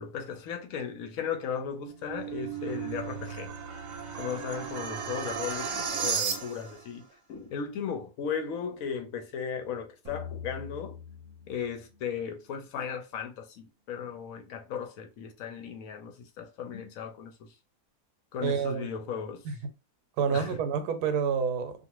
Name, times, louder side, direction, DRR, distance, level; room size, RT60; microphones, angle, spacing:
voice 1, 0.0-3.5 4.2-11.0 11.5-17.5 18.3-19.5 20.3-20.6, left 7 dB, 65° left, 1.0 m, -36 dB
sound 1, 1.7-6.8, right 6 dB, 65° right, 0.9 m, -34 dB
sound 2, 10.0-13.3, left 7 dB, 35° right, 0.7 m, -44 dB
voice 2, 18.4-18.9 19.4-19.5 20.2-21.7, right 6 dB, 80° right, 1.1 m, -28 dB
2.5 x 2.5 x 2.9 m
omnidirectional pair, 1.7 m